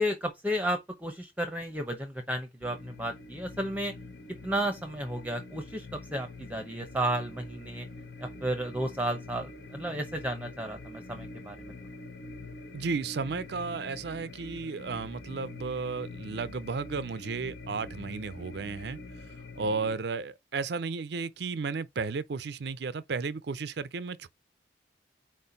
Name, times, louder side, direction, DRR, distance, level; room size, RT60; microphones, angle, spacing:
voice 1, 0.0-3.9 4.4-7.9 8.2-11.7, right 1 dB, 10° right, 0.7 m, -33 dB
sound 1, 2.6-20.0, left 2 dB, 70° left, 1.1 m, -45 dB
voice 2, 12.7-24.3, right 4 dB, 60° right, 0.5 m, -34 dB
4.6 x 4.3 x 5.2 m
head